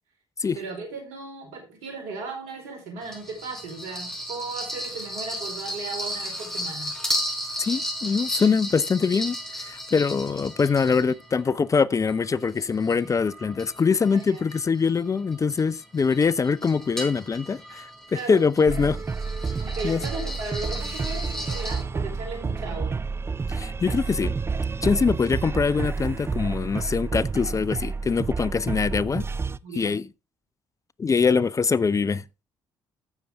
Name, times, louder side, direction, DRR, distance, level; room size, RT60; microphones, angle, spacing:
voice 1, 0.6-6.9 13.0-13.1 14.1-14.4 18.1-18.4 19.6-23.0 29.6-30.0, right 3 dB, 80° right, 4.1 m, -36 dB
sound 1, 3.0-11.5 12.1-21.8, equal, 5° left, 4.5 m, -35 dB
voice 2, 7.6-19.0 19.8-20.0 23.5-24.3 24.8-29.3 29.7-30.0 31.0-32.2, left 5 dB, 30° left, 0.6 m, -23 dB
sound 2, 18.7-29.6, right 4 dB, 25° right, 0.5 m, -29 dB
14.5 x 6.8 x 3.5 m
hypercardioid pair, 55°, 10 cm